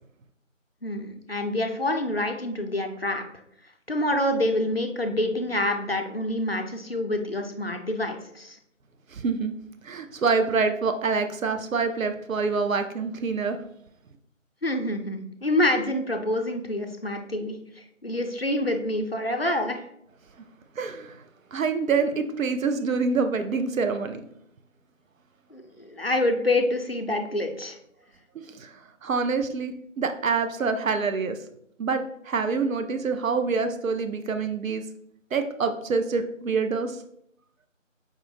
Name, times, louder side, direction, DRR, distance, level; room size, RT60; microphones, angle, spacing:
voice 1, 0.8-3.3 3.9-8.6 14.6-19.9 25.5-27.8, left 1 dB, 50° left, 4 dB, 0.4 m, -27 dB
voice 2, 9.1-9.5 9.8-13.6 20.8-21.2 21.5-24.2 28.3-31.4 31.8-34.8 35.3-37.0, right 4 dB, 85° right, 8 dB, 0.5 m, -26 dB
5.1 x 2.0 x 3.3 m, 0.72 s
figure-of-eight pair, 175°, 39 cm